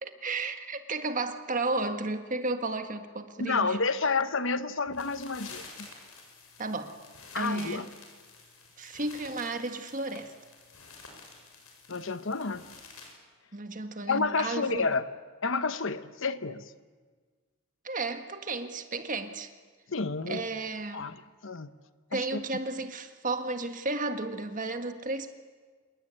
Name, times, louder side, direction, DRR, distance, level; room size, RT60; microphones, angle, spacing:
voice 1, 0.0-3.8 6.6-7.0 7.4-7.8 8.8-10.3 13.5-14.9 17.8-19.5 20.3-21.1 22.1-25.3, right 3 dB, 35° right, 7 dB, 1.6 m, -33 dB
voice 2, 3.4-5.9 7.3-7.9 11.9-12.6 14.1-15.0 15.4-16.6 19.9-20.4 20.9-21.7 22.1-22.4, left 4 dB, 60° left, 12 dB, 1.0 m, -30 dB
sound 1, 4.9-13.1, left 4 dB, 85° left, 7.0 m, -50 dB
27.5 x 22.0 x 9.0 m, 1.5 s
head